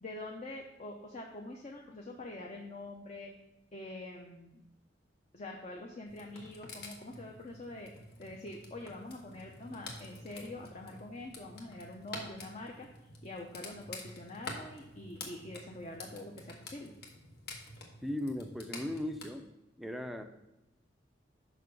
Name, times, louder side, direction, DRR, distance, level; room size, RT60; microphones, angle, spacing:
voice 1, 0.0-3.3 3.7-4.6 5.3-7.9 8.2-12.9 13.2-16.9, left 2 dB, 35° left, 1 dB, 0.7 m, -45 dB
sound 1, 6.1-19.3, left 2 dB, 60° left, 1.2 m, -48 dB
voice 2, 18.0-19.5 19.8-20.2, left 1 dB, ahead, 6 dB, 0.5 m, -37 dB
6.4 x 5.6 x 5.2 m, 0.93 s
head